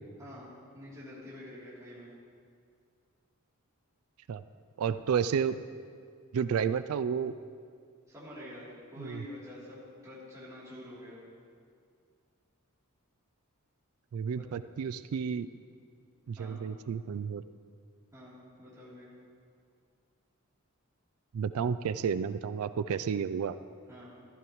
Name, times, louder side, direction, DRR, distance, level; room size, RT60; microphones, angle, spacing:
voice 1, 0.2-2.1 8.1-11.2 14.3-14.4 16.3-16.6 18.1-19.2 23.9-24.1, left 1 dB, 15° right, -9 dB, 3.1 m, -47 dB
voice 2, 4.8-5.6 6.3-7.4 9.0-9.2 14.1-15.5 16.3-17.4 21.3-23.6, right 7 dB, 75° right, 13 dB, 0.3 m, -31 dB
14.5 x 14.0 x 3.1 m, 2.2 s
head